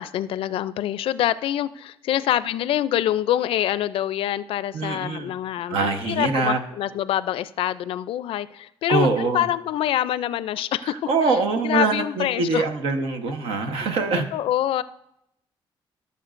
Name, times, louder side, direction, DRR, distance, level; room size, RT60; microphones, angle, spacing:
voice 1, 0.0-10.9 11.6-12.6 13.8-13.9 14.3-14.8, left 12 dB, 80° left, 15 dB, 0.4 m, -25 dB
voice 2, 4.7-5.3 5.7-6.6 8.9-9.4 11.1-14.3, right 4 dB, 85° right, 4 dB, 1.1 m, -23 dB
16.0 x 6.9 x 2.5 m, 0.81 s
cardioid pair, 105°, 9 cm